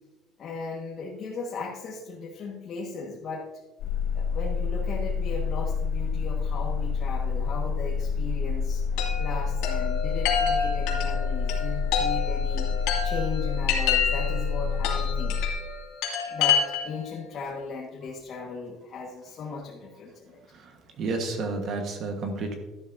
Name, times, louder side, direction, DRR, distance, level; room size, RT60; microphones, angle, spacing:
voice 1, 0.4-3.5 4.1-12.7 13.0-15.4 16.3-20.4, left 4 dB, 40° left, -3 dB, 1.6 m, -37 dB
sound 1, 3.8-15.5, left 5 dB, 65° left, 2.7 m, -28 dB
Chime, 9.0-17.1, left 7 dB, 85° left, 2.3 m, -28 dB
voice 2, 20.5-22.6, right 3 dB, 45° right, 4 dB, 1.4 m, -31 dB
12.5 x 11.5 x 2.7 m, 1.1 s
cardioid pair, 160°, 0 cm